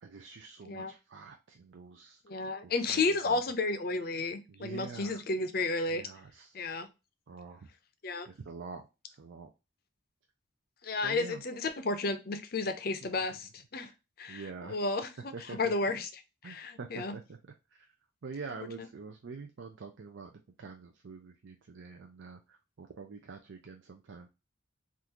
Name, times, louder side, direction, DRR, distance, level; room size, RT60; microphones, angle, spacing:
voice 1, 0.0-2.2 2.6-3.4 4.5-5.2 5.9-6.6 7.3-7.7 8.3-9.5 11.0-11.4 13.1-13.2 13.8-13.9 14.3-14.8 15.3-16.0 16.4-17.4 17.7-17.9 18.2-20.3 20.6-24.3, right 4 dB, 70° right, 3 dB, 0.4 m, -46 dB
voice 2, 2.2-6.0 6.5-6.9 8.0-8.3 10.8-13.9 14.2-16.1 16.4-17.1, left 3 dB, 50° left, 9 dB, 0.5 m, -32 dB
3.6 x 2.5 x 2.8 m, 0.27 s
head